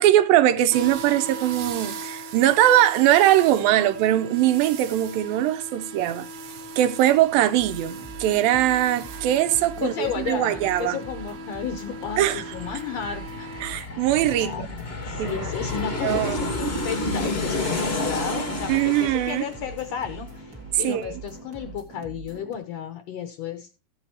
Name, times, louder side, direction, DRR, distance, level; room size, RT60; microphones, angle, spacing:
voice 1, 0.0-6.3 6.8-11.0 12.2-12.4 13.6-14.7 15.2-15.5 16.0-16.4 18.7-19.4 20.8-21.1, right 13 dB, 80° right, 2.4 m, -21 dB
sound 1, 0.7-13.7, right 3 dB, 65° right, 1.9 m, -38 dB
sound 2, 7.6-22.6, right 3 dB, 40° right, 1.4 m, -43 dB
Aircraft, 9.3-9.4 9.7-21.0 21.3-21.4, left 2 dB, 60° left, 0.6 m, -31 dB
voice 2, 9.8-13.5 14.4-23.7, left 8 dB, 75° left, 1.5 m, -33 dB
15.0 x 7.9 x 2.8 m
omnidirectional pair, 4.1 m